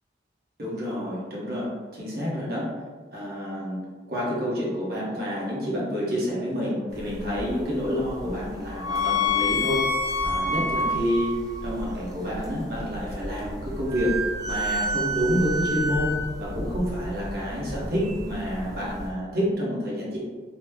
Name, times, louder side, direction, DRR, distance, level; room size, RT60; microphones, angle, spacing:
voice 1, 0.6-2.7 3.1-3.8 4.1-9.9 10.2-11.4 11.6-14.2 14.5-16.1 16.4-20.2, equal, 50° right, -6 dB, 0.9 m, -28 dB
sound 1, 6.9-19.1, left 2 dB, 20° right, 0.4 m, -29 dB
3.0 x 2.1 x 3.4 m, 1.5 s
head